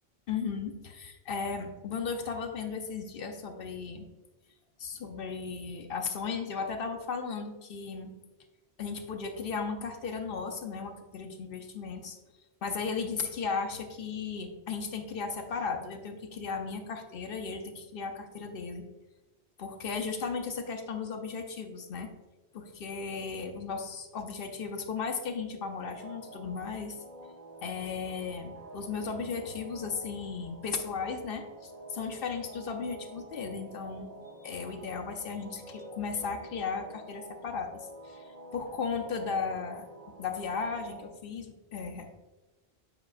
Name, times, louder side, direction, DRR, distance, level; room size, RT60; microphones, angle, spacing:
voice 1, 0.3-4.1 4.8-8.1 8.8-12.2 12.6-18.8 19.6-22.1 22.5-27.0 27.6-34.1 34.4-39.9 40.2-42.1, left 5 dB, 60° left, 5 dB, 0.8 m, -36 dB
sound 1, 25.8-41.1, right 1 dB, 40° right, 0.9 m, -48 dB
8.0 x 5.2 x 2.4 m, 1.1 s
omnidirectional pair, 1.1 m